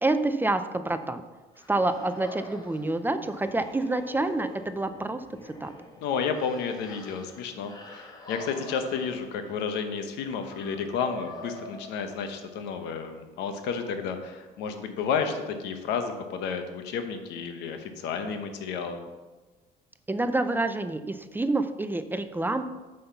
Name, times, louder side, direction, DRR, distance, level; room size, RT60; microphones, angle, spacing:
voice 1, 0.0-1.2 1.7-5.7 20.1-22.6, right 2 dB, 10° right, 10 dB, 0.5 m, -28 dB
sound 1, 1.5-12.6, left 1 dB, 20° left, 1.4 m, -46 dB
voice 2, 6.0-19.0, left 6 dB, 90° left, 7 dB, 1.0 m, -31 dB
5.8 x 5.5 x 6.8 m, 1.2 s
cardioid pair, 110°, 17 cm